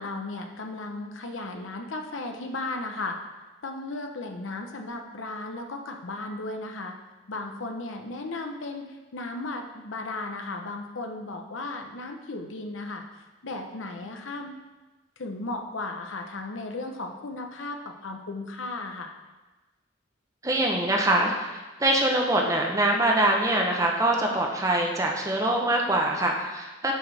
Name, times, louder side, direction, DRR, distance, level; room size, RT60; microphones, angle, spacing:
voice 1, 0.0-3.2 3.6-7.0 7.3-13.0 13.4-14.5 15.2-19.1 26.9-27.0, left 2 dB, 80° left, 4 dB, 0.8 m, -35 dB
voice 2, 20.4-26.9, right 1 dB, 15° right, 0 dB, 0.7 m, -24 dB
9.3 x 4.4 x 3.4 m, 1.2 s
head